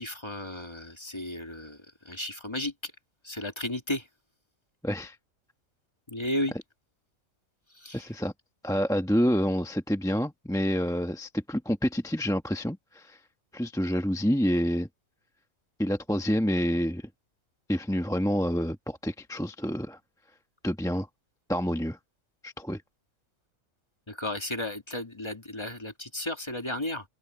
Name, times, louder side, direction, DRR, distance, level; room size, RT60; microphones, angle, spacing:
voice 1, 0.0-1.8 2.1-2.9 3.2-4.0 6.1-6.6 7.8-8.1 24.1-27.0, left 1 dB, 20° left, 1.9 m, -34 dB
voice 2, 4.8-5.2 7.9-8.3 8.6-13.2 13.5-14.9 15.8-17.1 17.7-20.0 20.6-21.1 21.5-22.0 22.4-22.8, equal, 5° left, 1.2 m, -28 dB
open air
omnidirectional pair, 1.4 m